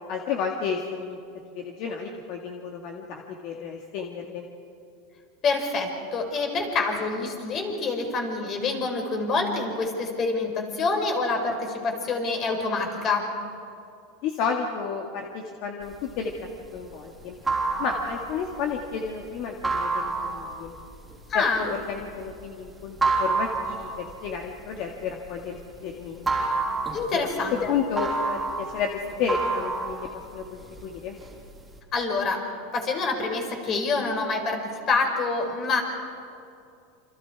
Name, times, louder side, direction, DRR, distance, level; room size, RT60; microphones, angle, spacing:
voice 1, 0.1-1.2 1.5-4.5 14.2-17.4 17.8-20.7 21.3-26.3 27.1-27.3 27.7-31.2, left 6 dB, 50° left, 1 dB, 2.0 m, -32 dB
voice 2, 5.4-13.3 21.3-21.7 26.9-27.7 31.9-32.4 32.7-35.8, left 3 dB, 30° left, 3 dB, 4.5 m, -26 dB
sound 1, 15.9-25.8 26.1-30.8 31.2-31.8, right 3 dB, 5° right, 3.6 m, -29 dB
28.5 x 27.0 x 4.8 m, 2.6 s
supercardioid pair, 145°, 0 cm